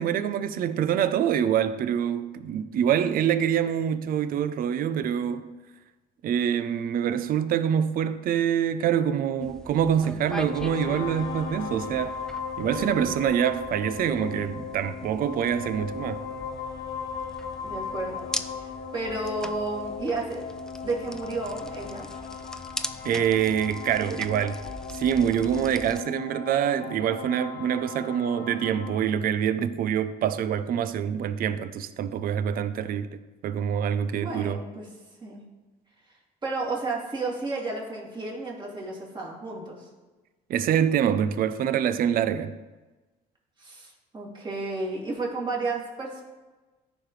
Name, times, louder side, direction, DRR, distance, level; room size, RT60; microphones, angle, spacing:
voice 1, 0.0-5.5 6.2-12.2 12.6-16.2 23.0-24.6 24.9-34.6 40.5-42.6, right 9 dB, 60° right, 0.5 m, -25 dB
sound 1, 9.4-26.0, left 1 dB, 5° left, 0.4 m, -41 dB
sound 2, 10.2-29.0, left 6 dB, 70° left, 1.0 m, -37 dB
voice 2, 17.6-18.3 18.6-20.4 20.8-22.1 34.2-34.9 35.2-35.4 36.4-39.9 43.6-46.2, right 3 dB, 25° right, 2.6 m, -32 dB
14.0 x 5.0 x 3.2 m
cardioid pair, 110°, 17 cm